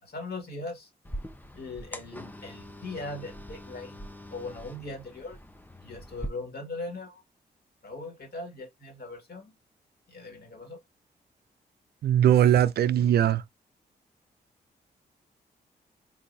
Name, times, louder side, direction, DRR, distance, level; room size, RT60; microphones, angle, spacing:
voice 1, 0.0-0.9 1.5-4.0 4.3-5.4 5.8-7.2 7.8-9.5 10.1-10.8, left 2 dB, 65° left, 2.0 m, -39 dB
sound 1, 1.0-6.3, equal, 10° left, 0.6 m, -42 dB
voice 2, 12.0-13.4, right 10 dB, 65° right, 0.4 m, -20 dB
3.9 x 2.7 x 2.6 m
cardioid pair, 55°, 18 cm